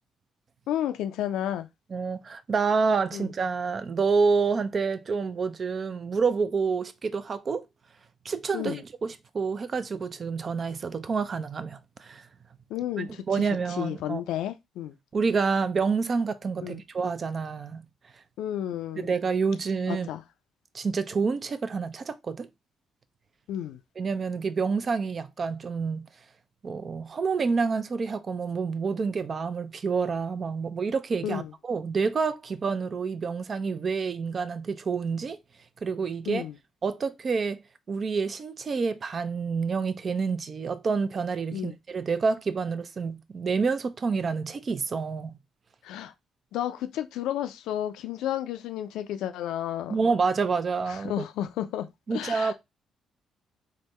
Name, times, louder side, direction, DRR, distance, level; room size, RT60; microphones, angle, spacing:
voice 1, 0.7-1.7 3.1-3.3 8.5-8.8 12.7-13.2 13.8-15.0 16.6-16.8 18.4-19.1 19.9-20.2 23.5-23.8 31.2-31.5 36.3-36.6 41.5-41.8 45.8-46.1 46.5-50.1 50.9-52.5, left 11 dB, 75° left, 0.4 m, -32 dB
voice 2, 1.9-7.6 8.2-12.3 13.0-14.2 15.1-17.9 19.0-20.1 20.7-22.5 24.0-26.1 26.6-35.4 35.8-36.5 36.8-37.6 37.9-45.4 49.9-51.3 52.1-52.5, right 5 dB, 45° right, 0.4 m, -28 dB
3.5 x 2.2 x 3.1 m
hypercardioid pair, 50°, 0 cm